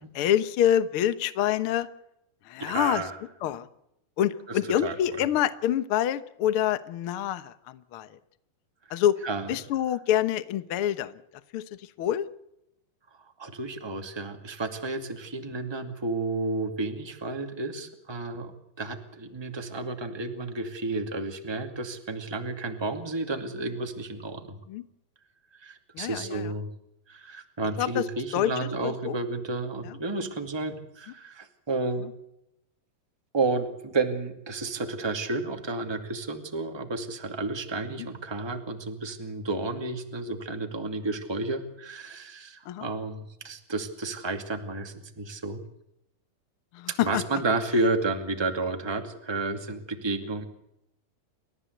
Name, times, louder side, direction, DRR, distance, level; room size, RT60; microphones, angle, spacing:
voice 1, 0.1-1.9 2.5-3.0 3.4-3.7 4.2-8.1 8.9-9.2 9.5-11.1 11.5-11.6 12.0-12.2 24.7-24.8 25.9-26.4 27.8-28.0 28.3-29.2 42.7-42.9 46.7-47.2, left 11 dB, 85° left, 13 dB, 1.2 m, -26 dB
voice 2, 2.6-3.2 4.5-5.3 9.2-9.6 13.4-18.5 18.8-24.6 25.5-26.7 27.1-32.1 33.3-45.6 47.0-50.4, right 3 dB, 10° right, 6 dB, 1.5 m, -31 dB
30.0 x 14.5 x 8.1 m, 0.80 s
omnidirectional pair, 4.2 m